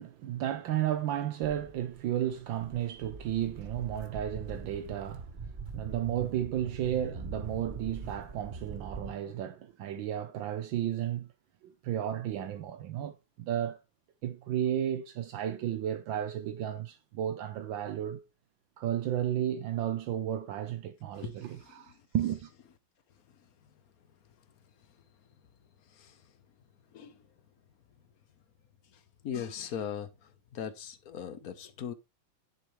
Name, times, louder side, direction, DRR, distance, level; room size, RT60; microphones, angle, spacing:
voice 1, 0.0-11.3 11.6-13.8 14.2-18.2 18.8-22.5, right 11 dB, 80° right, 1.5 m, -33 dB
Walk footsteps, 1.4-9.1, right 4 dB, 30° right, 1.1 m, -43 dB
voice 2, 21.1-21.8 25.9-26.2 26.9-27.2 28.9-31.9, left 8 dB, 55° left, 1.2 m, -40 dB
10.5 x 7.8 x 3.1 m
omnidirectional pair, 2.1 m